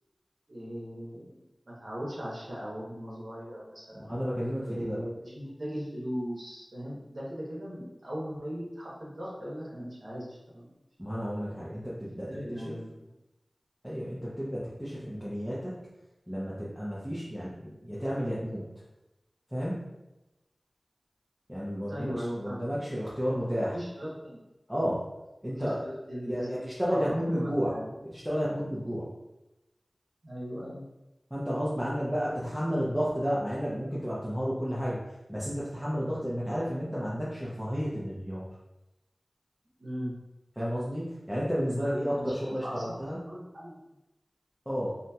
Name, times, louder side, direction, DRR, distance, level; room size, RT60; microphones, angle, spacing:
voice 1, 0.5-1.4 1.7-4.1 4.7-10.8 12.2-12.9 21.9-22.7 23.2-24.5 25.5-26.6 27.0-27.9 30.2-30.8 39.8-40.1 41.8-42.9 43.2-43.7, equal, 70° right, -6 dB, 0.8 m, -38 dB
voice 2, 3.9-5.0 11.0-12.8 13.8-15.9 16.3-18.6 19.5-19.9 21.5-23.8 24.7-25.1 25.4-25.8 26.2-27.8 28.0-29.1 31.3-35.0 35.3-38.5 40.6-43.2 44.7-45.0, equal, ahead, -8 dB, 0.7 m, -32 dB
2.7 x 2.7 x 2.2 m, 0.96 s
wide cardioid pair, 40°, 0 cm